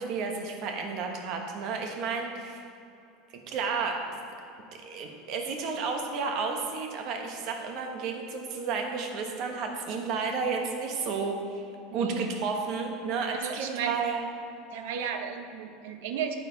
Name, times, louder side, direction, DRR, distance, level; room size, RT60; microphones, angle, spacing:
voice 1, 0.0-2.6 3.3-4.0 4.8-11.6 11.9-14.3, right 5 dB, 45° right, 3 dB, 1.2 m, -32 dB
voice 2, 11.9-12.3 13.3-14.0 14.7-16.3, right 7 dB, 75° right, 6 dB, 0.8 m, -34 dB
9.4 x 9.4 x 4.0 m, 2.6 s
supercardioid pair, 170°, 0 cm